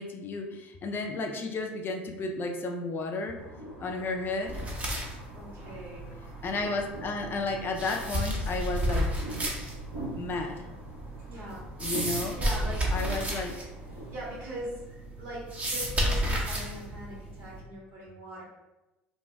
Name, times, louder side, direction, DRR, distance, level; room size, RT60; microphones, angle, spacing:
voice 1, 0.0-3.4 3.8-4.6 6.4-9.1 10.2-10.7 11.8-12.4 12.9-13.6, left 3 dB, 40° left, 3 dB, 0.4 m, -33 dB
sound 1, 3.3-14.3, right 1 dB, 80° right, 1.1 m, -42 dB
sound 2, 4.5-17.6, equal, 25° right, 0.8 m, -33 dB
voice 2, 5.3-6.1 11.2-11.7 12.1-12.9 13.3-13.5 13.9-18.4, equal, 60° right, -4 dB, 1.4 m, -41 dB
2.6 x 2.2 x 3.3 m, 1.0 s
hypercardioid pair, 75°, 6 cm